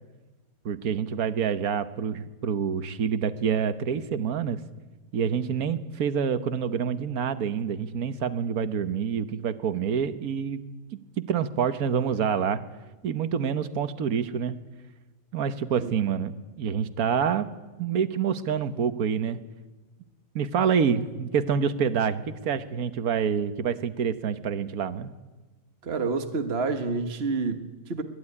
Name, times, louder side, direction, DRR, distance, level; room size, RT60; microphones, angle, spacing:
voice 1, 0.6-4.6 5.1-10.6 10.9-12.6 13.0-14.5 15.3-17.5 17.8-19.4 20.3-25.1, right 7 dB, 85° right, 11 dB, 1.6 m, -27 dB
voice 2, 25.8-28.0, right 4 dB, 45° right, 7 dB, 1.7 m, -28 dB
24.5 x 18.5 x 9.8 m, 1.2 s
omnidirectional pair, 1.5 m